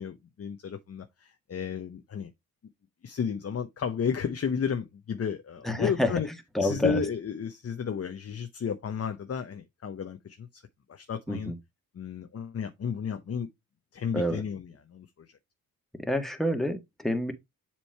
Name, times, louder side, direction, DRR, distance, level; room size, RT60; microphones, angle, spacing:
voice 1, 0.0-2.3 3.0-6.3 6.6-10.6 10.9-11.5 11.9-13.5 13.9-15.3, left 6 dB, 40° left, 0.8 m, -33 dB
voice 2, 5.6-6.1 6.5-7.0 11.3-11.5 14.1-14.4 16.0-17.3, left 1 dB, ahead, 1.4 m, -28 dB
7.2 x 3.1 x 4.4 m
supercardioid pair, 55°, 38 cm